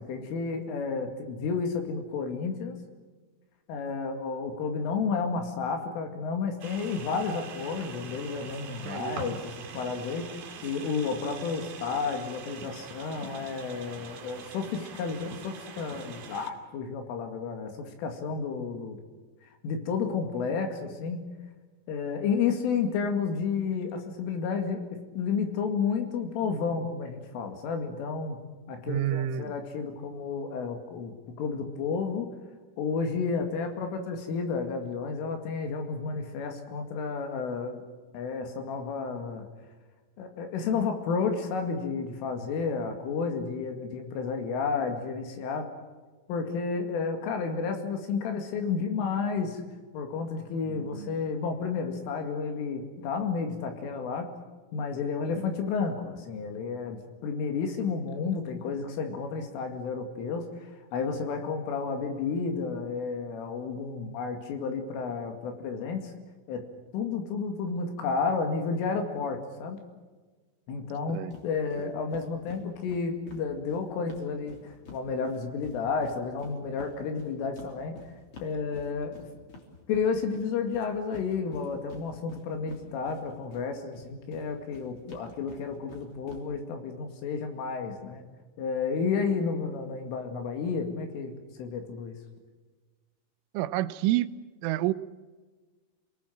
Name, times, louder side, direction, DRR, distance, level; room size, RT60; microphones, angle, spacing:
voice 1, 0.0-2.7 3.7-19.0 19.6-21.2 21.9-24.8 25.1-28.4 28.7-31.1 31.4-32.3 32.8-37.8 38.1-39.5 40.2-45.7 46.3-49.6 49.9-54.3 54.7-66.1 66.5-66.7 66.9-69.8 70.7-77.9 78.4-79.1 79.9-88.2 88.6-92.2, left 5 dB, 80° left, 5 dB, 4.7 m, -31 dB
sound 1, 6.6-16.5, right 6 dB, 55° right, 4.4 m, -43 dB
voice 2, 8.9-9.2 28.9-29.5 50.7-51.1 71.1-71.3 71.8-71.9 93.5-94.3 94.6-94.9, right 14 dB, 80° right, 14 dB, 3.3 m, -29 dB
sound 2, 71.3-71.4 71.7-71.8 72.1-75.0 75.2-83.6 83.9-86.4, left 4 dB, 30° left, 3.7 m, -48 dB
28.0 x 19.0 x 7.5 m, 1.3 s
omnidirectional pair, 5.7 m